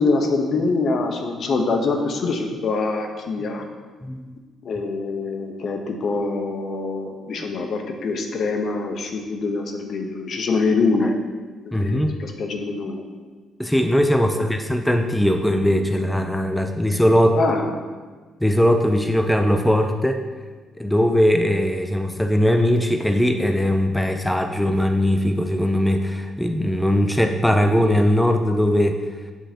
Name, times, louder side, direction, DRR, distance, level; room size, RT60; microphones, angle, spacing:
voice 1, 0.0-3.7 4.6-11.2 11.6-13.0 17.3-17.7, left 3 dB, 60° left, 4 dB, 0.9 m, -24 dB
voice 2, 11.7-12.1 13.6-17.4 18.4-20.2 20.8-29.0, equal, 5° left, 5 dB, 0.5 m, -20 dB
7.5 x 6.7 x 2.9 m, 1.4 s
cardioid pair, 90°, 0 cm